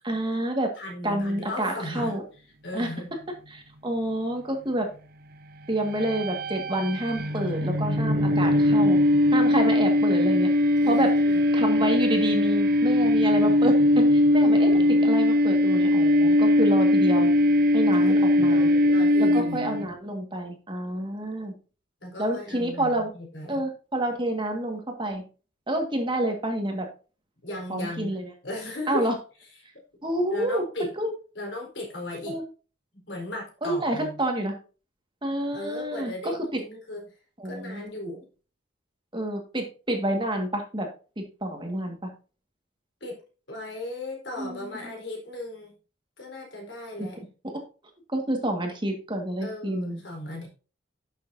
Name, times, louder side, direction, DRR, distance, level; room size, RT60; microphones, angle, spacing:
voice 1, 0.0-0.7 1.0-2.2 2.7-2.9 3.5-4.9 5.7-9.0 9.3-10.5 10.9-11.1 11.5-17.3 17.7-18.7 19.2-21.5 22.2-23.1 23.5-25.2 25.7-26.9 27.7-28.3 28.9-29.1 30.0-31.1 32.3-32.4 33.6-34.5 35.2-36.6 37.4-37.9 39.1-40.9 41.2-42.1 44.4-44.9 47.0-47.1 47.4-47.5 48.1-50.0, right 1 dB, 25° right, 3 dB, 1.9 m, -28 dB
voice 2, 0.8-2.1 2.6-3.1 10.8-11.4 14.4-15.0 18.0-19.9 22.0-23.6 27.4-28.2 28.4-29.1 30.3-30.9 31.3-32.4 32.9-34.2 35.5-37.1 37.4-38.3 43.0-43.2 43.5-45.7 46.2-47.2 49.4-50.5, left 1 dB, 65° left, 0 dB, 4.3 m, -36 dB
sound 1, 5.8-19.8, left 1 dB, 50° right, 0.9 m, -21 dB
11.5 x 6.9 x 2.8 m, 0.35 s
head